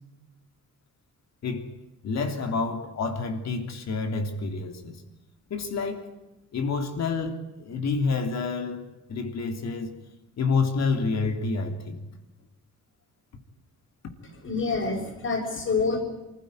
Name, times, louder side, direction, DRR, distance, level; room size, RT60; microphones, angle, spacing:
voice 1, 2.0-5.0 5.5-6.1 6.5-9.9 10.4-12.0, left 4 dB, 60° left, 3.4 m, -28 dB
voice 2, 14.4-16.0, left 4 dB, 45° left, 6.2 m, -27 dB
24.5 x 15.0 x 9.8 m
cardioid pair, 90°, 30 cm